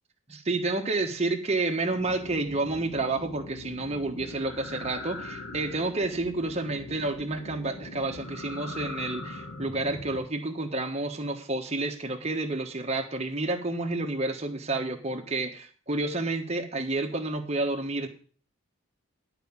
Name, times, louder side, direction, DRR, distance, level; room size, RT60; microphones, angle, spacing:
voice 1, 0.3-18.1, right 2 dB, 30° right, 4 dB, 1.3 m, -30 dB
sound 1, 1.9-10.2, left 2 dB, 45° left, 1.6 m, -41 dB
11.5 x 5.0 x 7.2 m, 0.41 s
head